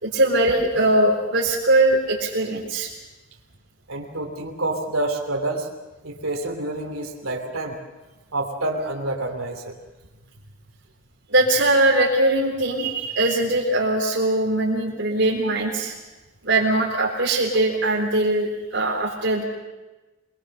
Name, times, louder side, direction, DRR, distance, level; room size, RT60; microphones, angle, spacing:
voice 1, 0.0-2.9 11.3-15.9 16.4-19.4, right 2 dB, 60° right, -3 dB, 3.7 m, -21 dB
voice 2, 3.9-5.7 6.0-7.8 8.3-9.7 15.4-15.5, right 2 dB, 90° right, 2 dB, 3.1 m, -28 dB
25.5 x 22.0 x 6.7 m, 1.1 s
head